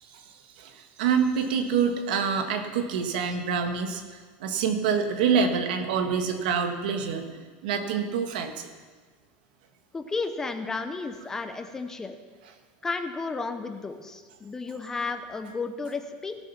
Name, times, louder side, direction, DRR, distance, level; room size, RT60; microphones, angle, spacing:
voice 1, 0.6-7.4 7.6-8.7, right 6 dB, 75° right, 5 dB, 1.8 m, -26 dB
voice 2, 9.9-12.2 12.8-16.4, left 4 dB, 10° left, 7 dB, 0.7 m, -33 dB
18.5 x 7.5 x 5.8 m, 1.4 s
supercardioid pair, 170°, 5 cm